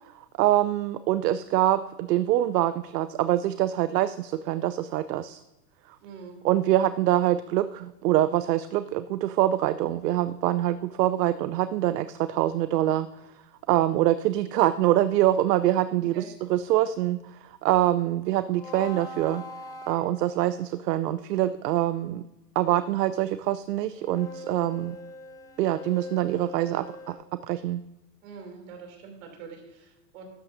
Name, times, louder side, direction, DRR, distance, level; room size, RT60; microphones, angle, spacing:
voice 1, 0.4-5.4 6.4-13.1 13.7-17.2 17.6-19.4 19.9-22.2 22.6-25.0 25.6-27.2 27.5-27.8, right 13 dB, 75° right, 13 dB, 0.6 m, -24 dB
voice 2, 6.0-6.4 16.1-16.3 28.2-30.2, right 5 dB, 55° right, 2 dB, 3.1 m, -44 dB
sound 1, 18.5-20.7 24.0-27.1, left 1 dB, 5° left, 0.6 m, -42 dB
12.5 x 8.9 x 2.7 m, 1.0 s
hypercardioid pair, 140°, 49 cm